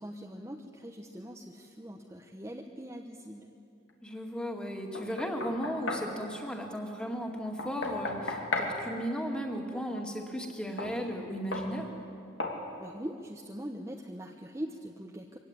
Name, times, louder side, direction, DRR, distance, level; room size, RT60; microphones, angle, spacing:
voice 1, 0.0-3.6 12.8-15.4, equal, 15° right, 1 dB, 1.0 m, -42 dB
voice 2, 4.0-11.9, equal, 5° left, 2 dB, 2.2 m, -35 dB
Knock, 4.9-6.1 7.6-8.8 10.8-10.9 11.5-11.7 12.4-12.6, left 2 dB, 85° left, 2.9 m, -34 dB
23.5 x 16.5 x 9.8 m, 2.5 s
head